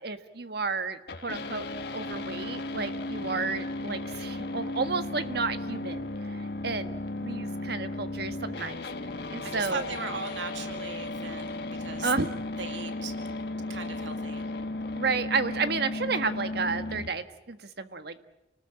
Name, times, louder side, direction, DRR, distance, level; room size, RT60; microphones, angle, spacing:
voice 1, 0.0-1.7 1.9-8.8 9.3-9.9 12.0-12.3 14.9-18.3, right 4 dB, 60° right, 10 dB, 1.5 m, -32 dB
sound 1, 1.1-17.1, left 2 dB, 60° left, 1.7 m, -35 dB
voice 2, 9.4-12.1 12.6-13.1 13.7-14.5, right 5 dB, 80° right, 7 dB, 2.4 m, -38 dB
29.0 x 19.5 x 8.9 m, 0.97 s
head